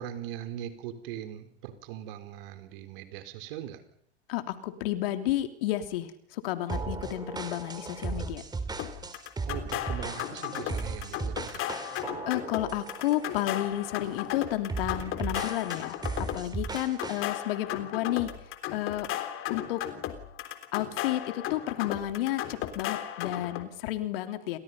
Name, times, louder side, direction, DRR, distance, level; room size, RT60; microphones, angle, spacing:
voice 1, 0.0-3.8 9.4-11.7, right 10 dB, 50° right, 9 dB, 4.5 m, -40 dB
voice 2, 4.3-8.4 12.3-18.3 18.7-19.1 19.5-19.8 20.7-24.6, left 14 dB, 55° left, 8 dB, 3.2 m, -31 dB
sound 1, 6.7-13.7 14.0-14.3 14.7-17.3, right 4 dB, 10° right, 3.2 m, -37 dB
sound 2, 8.8-23.6, left 12 dB, 35° left, 3.6 m, -36 dB
29.5 x 26.5 x 5.6 m, 0.67 s
figure-of-eight pair, 95°, 35 cm